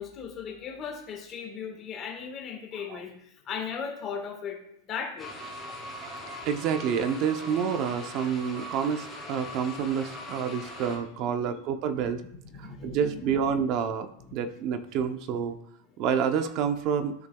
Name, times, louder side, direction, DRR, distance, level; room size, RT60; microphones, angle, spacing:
voice 1, 0.0-4.6 4.9-5.3 5.7-5.8 10.4-10.5 11.0-11.6 12.0-12.1 12.4-13.6 14.3-14.4, left 6 dB, 25° left, 2 dB, 1.5 m, -38 dB
sound 1, 5.2-11.0, equal, ahead, 2.2 m, -40 dB
voice 2, 6.0-12.2 12.6-15.6 16.0-17.1, right 7 dB, 35° right, 9 dB, 0.7 m, -28 dB
13.0 x 5.9 x 2.3 m, 0.73 s
supercardioid pair, 170°, 0 cm